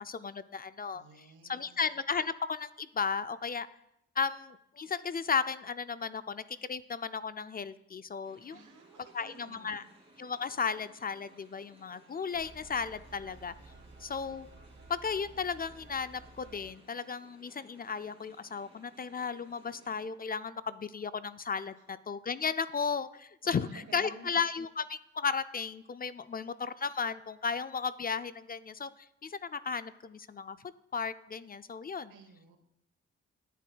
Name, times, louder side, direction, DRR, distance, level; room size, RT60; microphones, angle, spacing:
voice 1, 0.0-1.0 1.5-3.7 4.2-8.6 9.1-9.8 10.2-13.5 14.0-14.5 14.9-28.9 29.2-30.6 30.9-32.1, left 5 dB, 30° left, 14 dB, 0.4 m, -35 dB
voice 2, 0.9-1.8 8.5-9.9 21.7-21.8 23.4-24.3 32.1-32.6, right 4 dB, 85° right, 6 dB, 1.1 m, -54 dB
sound 1, 8.2-20.1, right 1 dB, 20° right, 2.5 m, -61 dB
sound 2, 12.3-16.7, right 3 dB, 40° right, 3.0 m, -54 dB
10.5 x 9.3 x 2.3 m, 0.80 s
cardioid pair, 65°, 30 cm